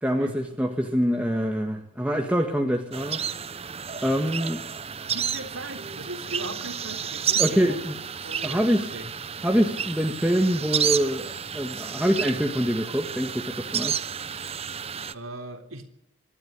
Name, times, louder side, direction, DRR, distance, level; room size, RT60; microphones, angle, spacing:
voice 1, 0.0-3.3 4.0-4.6 7.4-8.0 8.4-8.9 9.4-14.0, equal, 5° right, 2 dB, 1.8 m, -25 dB
sound 1, 2.9-15.1, right 8 dB, 30° right, 0.8 m, -31 dB
voice 2, 5.1-7.9 8.2-9.1 15.1-15.9, right 2 dB, 75° right, 5 dB, 3.5 m, -38 dB
25.5 x 12.0 x 9.7 m, 0.80 s
head